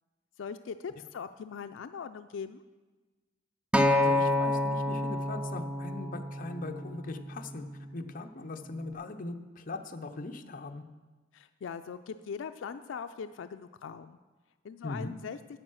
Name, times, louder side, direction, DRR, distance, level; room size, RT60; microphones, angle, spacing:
voice 1, 0.4-2.6 11.3-14.2 14.6-15.4, left 6 dB, 85° left, 10 dB, 0.4 m, -40 dB
voice 2, 3.7-7.7 7.9-10.8 14.8-15.1, left 2 dB, 45° left, 6 dB, 0.6 m, -40 dB
Acoustic guitar, 3.7-8.0 8.8-8.9, left 1 dB, 5° right, 0.4 m, -29 dB
8.9 x 7.9 x 6.3 m, 1.3 s
head